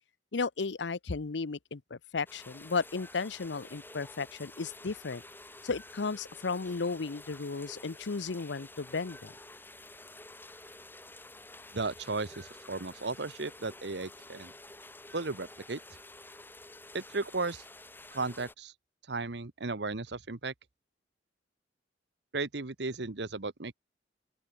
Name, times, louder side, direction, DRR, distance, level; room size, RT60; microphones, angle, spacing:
voice 1, 0.3-5.2 5.6-9.3, left 4 dB, 85° left, 0.7 m, -34 dB
sound 1, 2.3-18.5, left 2 dB, 10° left, 5.3 m, -50 dB
voice 2, 11.7-14.5 15.1-15.8 16.9-17.6 18.1-18.7 19.1-20.5 22.3-23.7, right 3 dB, 70° right, 1.2 m, -35 dB
open air
head